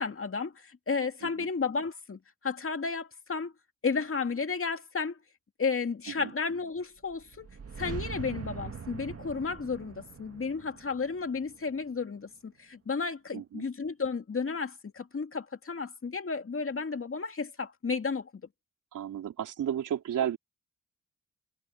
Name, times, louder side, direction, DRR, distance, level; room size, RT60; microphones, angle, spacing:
voice 1, 0.0-3.5 3.8-5.2 5.6-7.5 7.8-18.3, left 5 dB, 45° left, 2.5 m, -33 dB
sound 1, 7.0-12.2, right 6 dB, 50° right, 2.4 m, -42 dB
voice 2, 13.3-13.6 18.9-20.4, right 10 dB, 85° right, 4.0 m, -33 dB
supercardioid pair, 50°, 30 cm